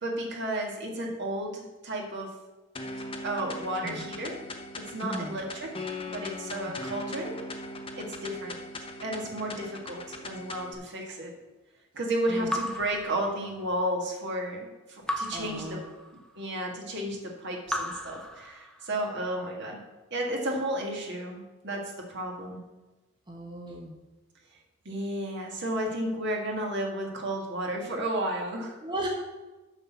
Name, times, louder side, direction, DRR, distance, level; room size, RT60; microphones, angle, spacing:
voice 1, 0.0-2.4 3.2-4.4 4.8-7.4 8.0-8.6 9.0-11.3 11.9-15.8 16.4-19.8 20.1-22.6 24.9-28.8, right 1 dB, 55° right, 0 dB, 1.8 m, -33 dB
sound 1, 2.8-10.8, left 2 dB, 25° left, 0.8 m, -39 dB
voice 2, 5.0-5.4 12.3-12.5 15.3-15.8 23.3-24.0 28.8-29.1, right 1 dB, 20° right, 0 dB, 0.9 m, -36 dB
Raindrop / Drip, 12.5-13.9 15.1-16.4 17.7-19.1, equal, 5° left, 0.5 m, -36 dB
7.0 x 6.1 x 7.0 m, 1.1 s
head